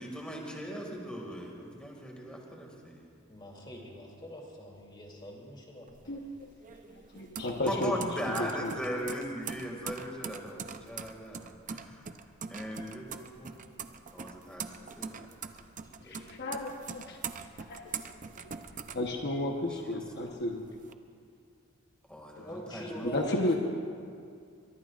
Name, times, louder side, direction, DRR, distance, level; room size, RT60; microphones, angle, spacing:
voice 1, 0.0-3.1 7.6-12.1 12.5-13.6 14.1-14.7 15.0-15.1 19.8-20.0 22.1-23.2, equal, 5° left, -1 dB, 2.1 m, -39 dB
voice 2, 3.3-6.2 15.8-16.2 22.4-23.6, equal, 25° left, -1 dB, 2.8 m, -45 dB
sound 1, 5.9-19.7 20.1-20.9, right 6 dB, 40° right, 0.6 m, -43 dB
voice 3, 6.1-6.5 6.9-7.9 8.3-8.7 16.0-17.2 17.6-17.9 18.4-18.5 18.9-20.6 22.4-22.5 23.0-23.5, left 1 dB, 55° left, 1 dB, 1.1 m, -33 dB
23.0 x 23.0 x 2.5 m, 2.3 s
head